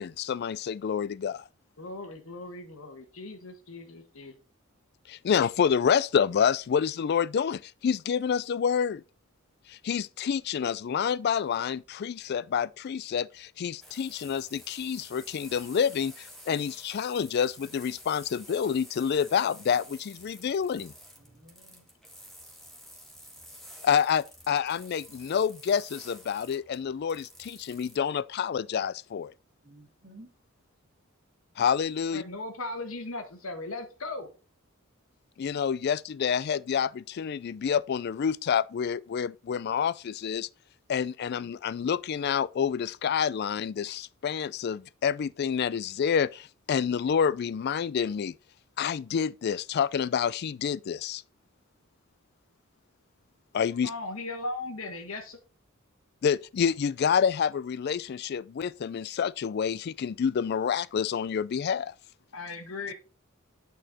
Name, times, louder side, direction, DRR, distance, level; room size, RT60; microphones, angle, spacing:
voice 1, 0.0-1.3 5.1-9.0 9.7-20.9 23.8-29.3 31.6-32.2 35.4-40.5 40.9-48.3 48.8-51.2 53.5-53.9 56.2-61.9, left 7 dB, 50° left, 0.3 m, -28 dB
voice 2, 1.8-4.3 32.1-34.3 53.8-55.4 62.3-62.9, left 2 dB, 75° left, 1.5 m, -38 dB
sound 1, 13.8-28.0, equal, ahead, 1.5 m, -50 dB
voice 3, 21.2-21.9 29.6-30.3, right 1 dB, 40° right, 2.4 m, -53 dB
8.9 x 4.4 x 4.2 m
head